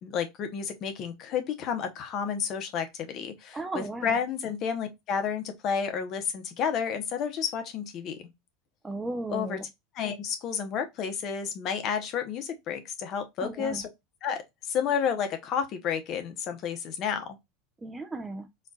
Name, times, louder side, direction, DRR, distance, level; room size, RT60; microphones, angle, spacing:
voice 1, 0.0-8.3 9.3-9.6 9.9-13.9 14.2-17.4, left 7 dB, 45° left, 0.9 m, -31 dB
voice 2, 3.5-4.2 8.8-9.7 13.4-13.9 17.8-18.5, right 2 dB, 15° right, 0.6 m, -35 dB
4.4 x 2.5 x 2.3 m
supercardioid pair, 115°, 0 cm